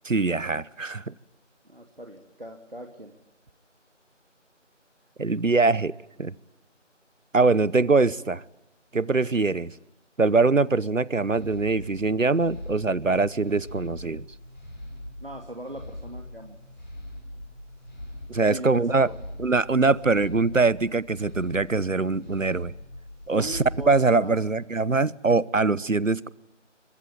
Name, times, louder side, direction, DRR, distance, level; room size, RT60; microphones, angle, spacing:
voice 1, 0.0-1.1 5.2-5.9 6.2-6.3 7.3-8.4 8.9-9.7 10.2-14.2 18.3-19.1 19.4-22.7 23.3-26.3, right 3 dB, 90° right, 1.1 m, -23 dB
voice 2, 1.7-3.1 15.2-16.6 18.5-19.1 19.9-20.0 23.3-24.4, equal, 50° right, 2.7 m, -39 dB
sound 1, 11.3-24.5, left 1 dB, 35° left, 7.6 m, -42 dB
25.0 x 23.5 x 9.1 m
figure-of-eight pair, 180°, 37 cm